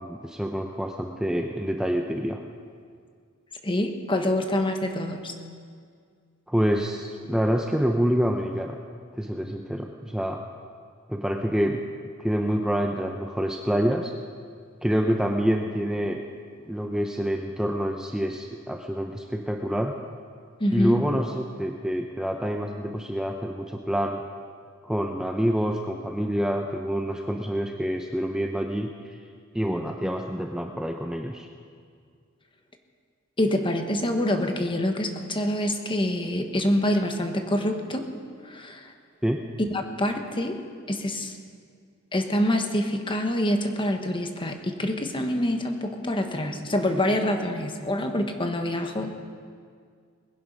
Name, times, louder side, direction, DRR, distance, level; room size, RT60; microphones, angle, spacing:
voice 1, 0.0-2.4 6.5-8.8 9.1-10.4 11.1-11.8 12.2-14.1 14.8-16.2 16.7-20.0 20.7-24.2 24.8-28.9 29.5-31.5 39.2-39.4, equal, 5° right, 3 dB, 0.6 m, -27 dB
voice 2, 3.6-5.3 20.6-21.0 33.4-38.1 38.4-38.9 39.6-40.6 40.9-41.4 42.1-49.1, left 1 dB, 25° left, 5 dB, 1.3 m, -26 dB
20.5 x 11.0 x 5.5 m, 2.1 s
head